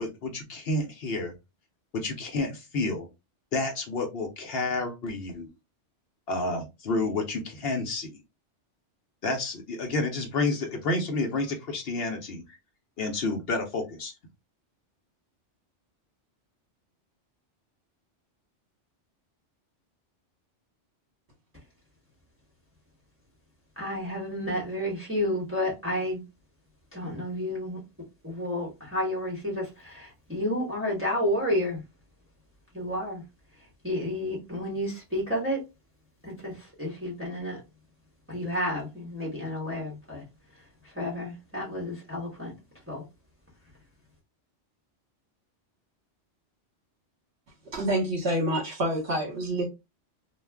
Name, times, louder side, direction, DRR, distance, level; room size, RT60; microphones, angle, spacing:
voice 1, 0.0-1.3 1.9-3.1 3.5-5.5 6.3-8.2 9.2-12.6 13.0-14.1, left 2 dB, 60° left, 0.8 m, -30 dB
voice 2, 23.8-26.2 26.9-27.8 28.2-31.8 32.7-33.2 33.8-35.6 36.2-37.6 38.3-40.2 40.9-42.5 42.9-43.0, left 1 dB, 10° right, 1.0 m, -31 dB
voice 3, 47.7-49.6, right 1 dB, 55° right, 1.2 m, -27 dB
2.4 x 2.2 x 3.3 m
omnidirectional pair, 1.2 m